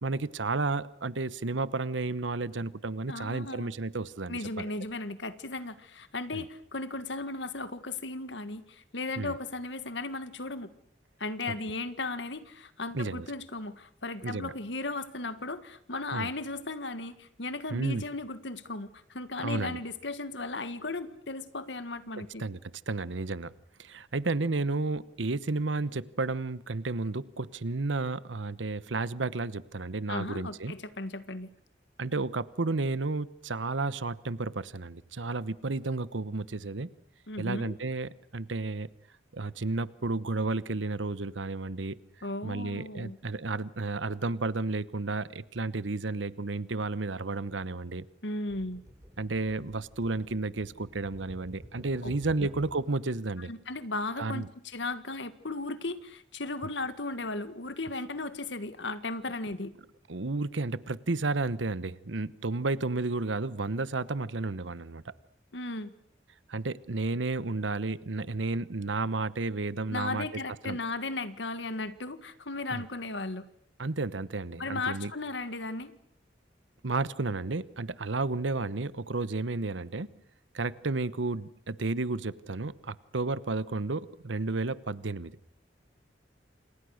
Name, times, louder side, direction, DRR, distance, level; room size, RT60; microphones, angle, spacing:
voice 1, 0.0-4.7 6.3-6.4 9.2-9.4 12.9-13.3 14.2-14.5 16.1-16.3 17.7-18.0 19.4-19.8 22.2-22.6 22.9-23.5 23.8-30.7 32.0-36.9 37.4-38.9 39.3-42.0 42.4-48.1 49.2-53.5 54.2-54.5 60.1-65.1 66.5-70.3 70.6-70.8 72.7-72.8 73.8-75.1 76.8-80.1 80.5-85.4, right 3 dB, 85° right, 1.0 m, -32 dB
voice 2, 3.1-3.7 4.3-10.7 11.2-22.4 30.1-31.5 37.3-37.8 42.2-43.2 48.2-48.8 52.0-52.1 53.5-59.7 65.5-65.9 69.9-73.4 74.6-75.9, left 2 dB, 75° left, 1.8 m, -36 dB
sound 1, 48.5-52.9 54.0-54.1, equal, 15° right, 5.3 m, -50 dB
29.0 x 27.5 x 6.5 m
head